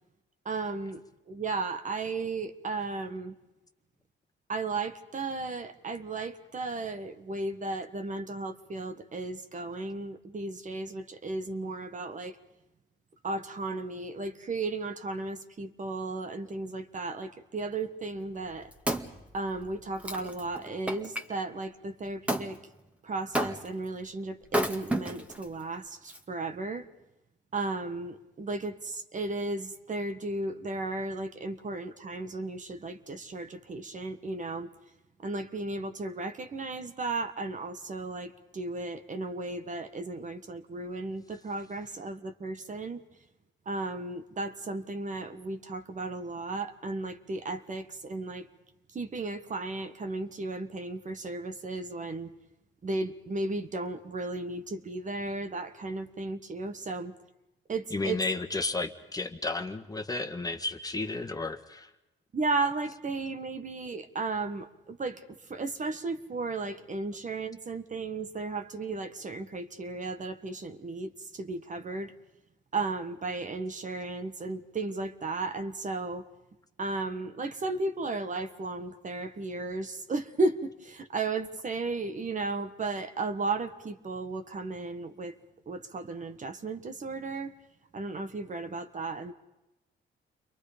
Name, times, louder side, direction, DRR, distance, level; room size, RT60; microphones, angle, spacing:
voice 1, 0.5-3.3 4.5-12.4 13.2-18.7 19.3-22.6 23.0-26.9 27.5-34.7 35.2-43.0 43.7-48.5 48.9-52.3 52.8-57.1 57.7-58.2 62.3-72.1 72.7-76.3 76.8-85.4 85.7-87.5 87.9-89.3, right 3 dB, 40° right, 8 dB, 1.6 m, -34 dB
Wood, 18.3-21.3 22.3-22.5 23.3-23.9 24.4-25.4 26.1-26.2, right 1 dB, 5° right, 1.9 m, -32 dB
voice 2, 57.9-61.9, left 3 dB, 20° left, 6 dB, 1.7 m, -32 dB
29.5 x 23.0 x 5.2 m, 0.97 s
cardioid pair, 90°, 20 cm